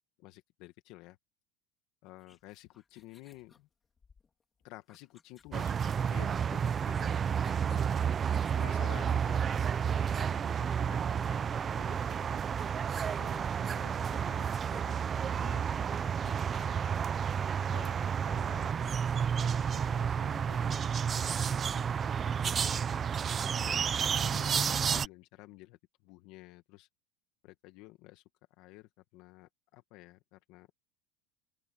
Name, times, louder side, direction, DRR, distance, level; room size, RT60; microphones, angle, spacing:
voice 1, 0.2-1.2 2.0-3.7 4.6-7.1 7.6-7.9 8.2-9.4 10.1-10.3 10.5-12.4 13.2-14.9 15.2-16.9 17.7-19.0 19.4-20.9 21.2-26.9 27.4-28.2 28.6-30.7, left 19 dB, 60° left, 1.6 m, -52 dB
sound 1, 2.2-10.2 11.0-11.2 11.5-11.6 11.9-16.7, left 5 dB, 20° left, 3.7 m, -62 dB
sound 2, 5.5-25.1, right 7 dB, 30° right, 0.6 m, -31 dB
open air
supercardioid pair, 125°, 0 cm